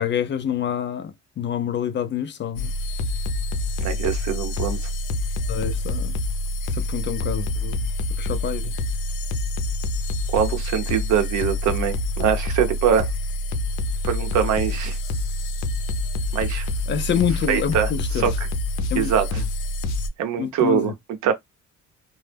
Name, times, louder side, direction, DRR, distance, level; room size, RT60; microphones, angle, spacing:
voice 1, 0.0-2.7 5.5-6.2 6.7-7.9 8.2-8.7 16.9-18.3 18.9-19.1 19.4-19.5 20.4-20.9, left 9 dB, 35° left, 0.4 m, -27 dB
sound 1, 2.6-20.1, left 1 dB, 90° left, 0.6 m, -26 dB
voice 2, 3.8-4.8 10.3-13.1 14.0-15.0 16.3-16.7 17.5-17.9 18.2-18.3 19.0-19.4 20.2-20.9 21.2-21.3, right 8 dB, 65° right, 0.7 m, -23 dB
2.1 x 2.0 x 3.2 m
cardioid pair, 110°, 32 cm